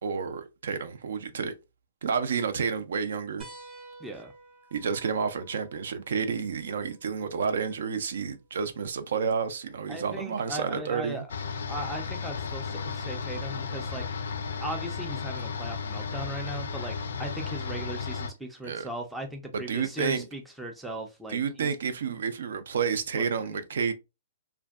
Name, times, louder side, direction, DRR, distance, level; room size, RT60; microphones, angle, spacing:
voice 1, 0.0-1.5 2.0-3.4 4.7-11.2 18.6-18.9 19.5-20.3 21.3-23.9, right 6 dB, 70° right, 0.4 m, -30 dB
sound 1, 3.4-8.5 10.0-10.1 11.8-11.9, right 2 dB, 20° right, 0.7 m, -52 dB
voice 2, 4.0-4.3 9.9-11.3 11.7-14.0 14.6-21.7 23.2-23.6, right 1 dB, 5° right, 0.4 m, -38 dB
sound 2, 11.3-18.3, left 5 dB, 85° left, 0.4 m, -34 dB
2.5 x 2.2 x 2.3 m
hypercardioid pair, 165°, 0 cm